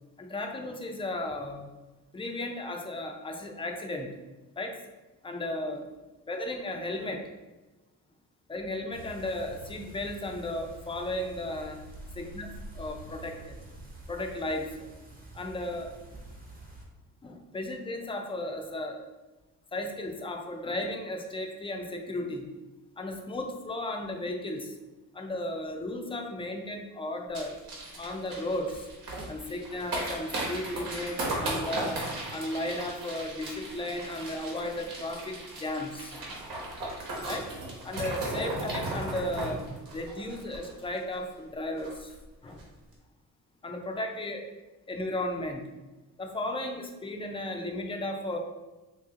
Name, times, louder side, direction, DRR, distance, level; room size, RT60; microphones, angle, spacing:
voice 1, 0.2-1.7 2.1-4.1 4.6-4.8 5.2-5.9 6.3-7.3 8.5-11.8 12.3-12.5 12.7-13.6 14.1-14.9 15.3-15.9 17.2-19.0 19.7-22.5 23.0-24.7 25.1-27.6 28.0-28.9 29.3-32.0 32.3-36.2 37.2-37.5 37.8-39.6 39.9-42.1 42.4-42.6 43.6-44.5 44.9-45.7 46.2-48.4, left 1 dB, 15° left, 3 dB, 0.4 m, -35 dB
sound 1, 8.9-16.9, right 1 dB, 25° right, 0.7 m, -47 dB
sound 2, 27.3-41.1 41.4-41.5 41.8-42.1 42.5-42.6, right 2 dB, 80° right, 1.1 m, -36 dB
2.8 x 2.8 x 3.5 m, 1.1 s
cardioid pair, 115°, 36 cm